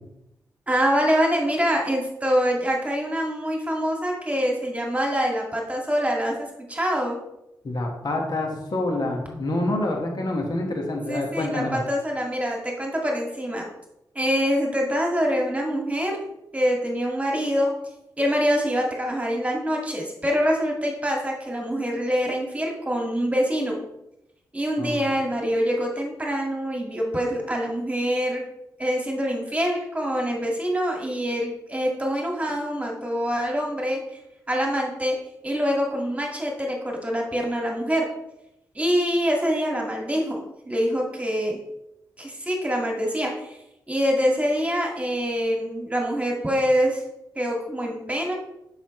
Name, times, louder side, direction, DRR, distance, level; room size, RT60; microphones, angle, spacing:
voice 1, 0.7-7.2 11.1-13.7 14.1-16.2 16.5-17.7 18.2-23.8 24.5-28.5 28.8-34.2 34.5-35.2 35.4-38.1 38.7-41.6 42.2-43.6 43.9-47.0 47.4-48.3, equal, 15° right, -1 dB, 2.0 m, -25 dB
voice 2, 7.6-11.8 24.8-25.0, left 2 dB, 60° left, 1 dB, 1.6 m, -27 dB
7.1 x 5.6 x 3.2 m, 0.88 s
supercardioid pair, 45°, 8 cm